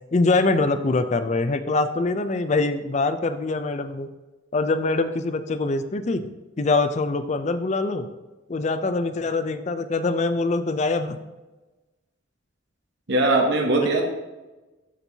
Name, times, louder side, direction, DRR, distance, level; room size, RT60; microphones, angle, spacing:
voice 1, 0.1-4.1 4.5-6.2 6.6-8.1 8.5-11.2, left 3 dB, 35° left, 9 dB, 0.4 m, -23 dB
voice 2, 13.1-14.0, right 2 dB, 60° right, 2 dB, 0.8 m, -20 dB
12.0 x 4.5 x 2.8 m, 1.1 s
head